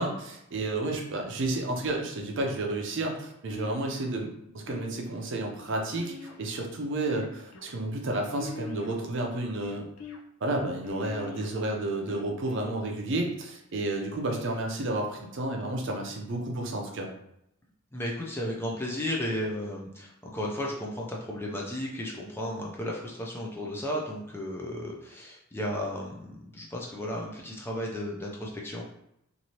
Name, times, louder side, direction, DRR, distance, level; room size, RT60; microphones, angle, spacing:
voice 1, 0.0-6.1 6.4-9.9 10.4-17.1, right 2 dB, 55° right, 1 dB, 0.5 m, -31 dB
sound 1, 3.5-4.1 4.7-5.2 5.9-6.6 7.1-7.7 8.4-9.1 9.6-10.2 10.8-11.5 12.1-12.7, left 4 dB, 85° left, 0.5 m, -42 dB
voice 2, 17.9-28.8, left 1 dB, 10° left, -2 dB, 0.4 m, -34 dB
3.0 x 2.6 x 2.8 m, 0.80 s
head